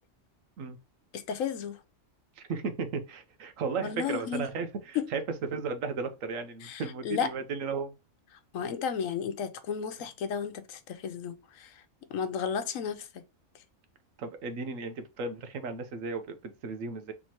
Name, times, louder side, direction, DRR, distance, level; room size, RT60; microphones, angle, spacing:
voice 1, 1.1-1.8 3.8-4.5 4.9-5.0 6.6-7.3 8.5-11.8 12.1-13.2, left 7 dB, 80° left, 1.1 m, -33 dB
voice 2, 2.4-7.9 14.2-17.1, right 4 dB, 75° right, 1.2 m, -35 dB
4.5 x 3.5 x 2.8 m
omnidirectional pair, 1.4 m